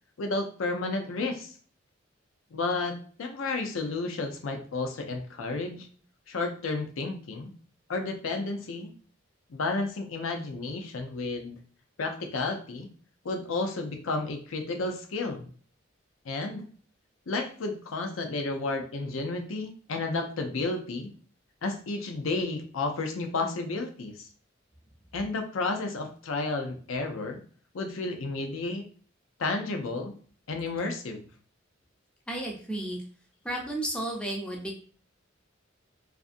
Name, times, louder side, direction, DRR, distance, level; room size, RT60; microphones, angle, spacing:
voice 1, 0.2-1.5 2.5-5.9 6.3-7.5 7.9-8.9 9.5-11.6 12.0-12.9 13.2-15.5 16.2-16.7 17.3-21.1 21.6-24.3 25.1-27.4 27.7-28.8 29.4-30.1 30.5-31.2, left 3 dB, 80° left, 5 dB, 0.5 m, -32 dB
voice 2, 32.3-33.0 33.4-34.8, right 1 dB, 5° left, 0 dB, 0.5 m, -33 dB
2.5 x 2.5 x 2.4 m, 0.44 s
head